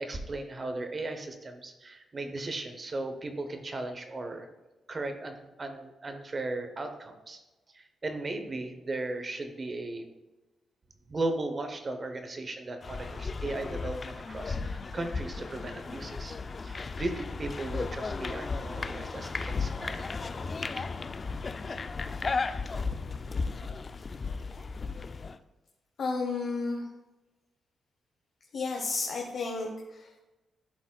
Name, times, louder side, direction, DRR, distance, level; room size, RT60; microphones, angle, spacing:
voice 1, 0.0-4.5 4.9-7.4 7.7-10.1 11.1-16.4 16.6-20.1 20.8-20.9, right 2 dB, 35° right, 7 dB, 0.8 m, -36 dB
sound 1, 12.8-25.4, left 4 dB, 35° left, 0.3 m, -35 dB
voice 2, 26.0-26.9 28.5-30.2, left 3 dB, 60° left, 0 dB, 0.9 m, -32 dB
11.5 x 4.0 x 2.3 m, 1.1 s
cardioid pair, 95°, 0 cm